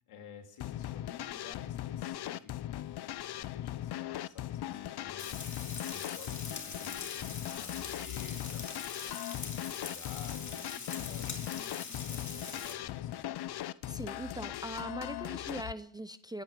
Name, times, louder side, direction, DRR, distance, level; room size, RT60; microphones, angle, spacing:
voice 1, 0.1-2.8 3.3-8.7 9.4-13.3, left 6 dB, 85° left, 3 dB, 3.0 m, -52 dB
sound 1, 0.6-15.7, left 13 dB, 50° left, 0.6 m, -39 dB
Frying (food), 5.2-12.7, left 5 dB, 35° left, 2.5 m, -43 dB
voice 2, 13.9-16.4, right 1 dB, 10° right, 12 dB, 0.5 m, -41 dB
24.5 x 9.2 x 5.2 m, 0.68 s
cardioid pair, 100°, 49 cm